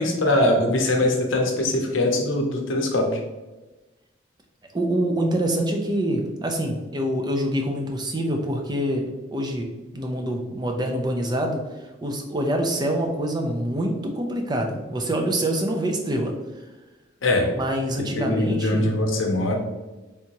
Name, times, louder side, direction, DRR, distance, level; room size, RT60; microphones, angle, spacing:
voice 1, 0.0-3.2 17.2-17.5 18.1-19.6, left 1 dB, 80° left, 2 dB, 0.7 m, -22 dB
voice 2, 4.7-9.7 9.9-16.3 17.6-18.9, right 1 dB, 20° right, 2 dB, 0.4 m, -25 dB
3.4 x 2.8 x 2.8 m, 1.1 s
head